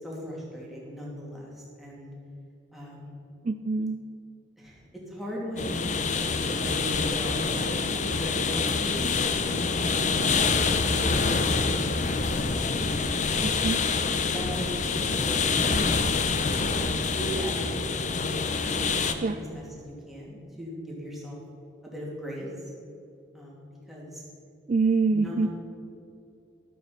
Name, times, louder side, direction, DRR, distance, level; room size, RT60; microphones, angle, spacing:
voice 1, 0.0-2.1 2.7-3.2 4.6-5.8 6.2-9.5 9.9-12.4 12.9-13.3 14.3-16.1 16.3-16.7 17.2-18.1 18.9-21.4 21.8-22.5 23.3-24.2 25.1-25.5, equal, ahead, -5 dB, 2.6 m, -39 dB
voice 2, 3.5-4.0 13.4-13.8 19.2-19.4 24.7-25.5, right 4 dB, 35° right, 8 dB, 0.3 m, -25 dB
sound 1, 5.6-19.1, left 4 dB, 35° left, 0.6 m, -26 dB
12.0 x 8.2 x 5.7 m, 2.7 s
head